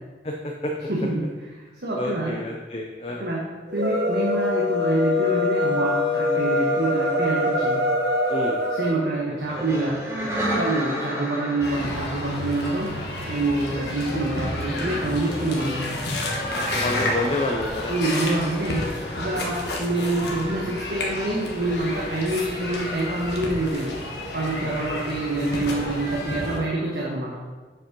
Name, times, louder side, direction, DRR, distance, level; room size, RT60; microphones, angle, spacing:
voice 1, 0.2-0.7 2.0-3.3 8.3-8.6 9.3-9.8 13.7-14.2 16.5-18.2 24.6-25.0, left 2 dB, 35° left, 1 dB, 0.6 m, -30 dB
voice 2, 0.9-1.2 1.8-2.4 3.2-7.8 8.8-10.0 10.5-12.9 13.3-15.9 17.9-18.9 19.2-23.9 24.3-27.4, right 2 dB, 65° right, -4 dB, 1.2 m, -26 dB
sound 1, 3.7-9.0, left 2 dB, 90° right, 1.1 m, -23 dB
sound 2, 9.4-13.1 14.4-19.1, equal, 15° right, 2.6 m, -33 dB
sound 3, 11.6-26.6, left 1 dB, 70° left, 1.4 m, -31 dB
7.4 x 5.4 x 5.2 m, 1.3 s
head